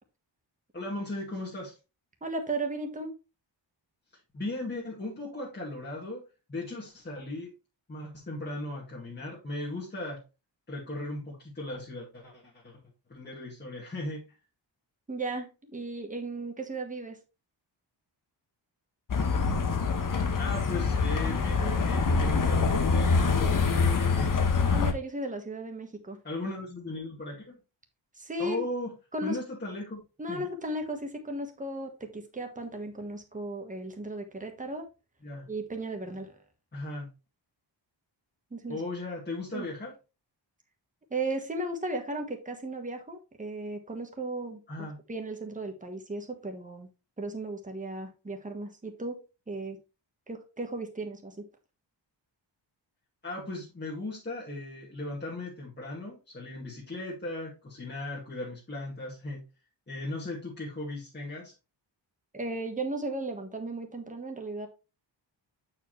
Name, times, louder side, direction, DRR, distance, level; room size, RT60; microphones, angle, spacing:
voice 1, 0.7-1.8 4.3-6.2 6.5-7.5 7.9-10.2 10.7-12.7 13.1-14.3 20.4-24.3 26.2-27.6 28.4-28.9 29.2-30.0 30.3-30.4 35.2-35.5 36.7-37.1 38.7-39.9 44.7-45.0 53.2-59.4 59.9-61.5, left 2 dB, 20° left, -5 dB, 1.9 m, -37 dB
voice 2, 2.2-3.1 15.1-17.2 24.7-26.2 28.1-28.6 29.1-29.4 30.2-34.8 35.5-36.3 38.5-38.8 39.5-39.7 41.1-46.9 47.2-49.2 49.5-49.8 50.3-51.4 62.3-64.7, right 2 dB, 15° right, 4 dB, 1.3 m, -35 dB
sound 1, 19.1-24.9, left 4 dB, 45° left, 1.0 m, -25 dB
8.4 x 4.8 x 3.1 m, 0.29 s
wide cardioid pair, 175°, 46 cm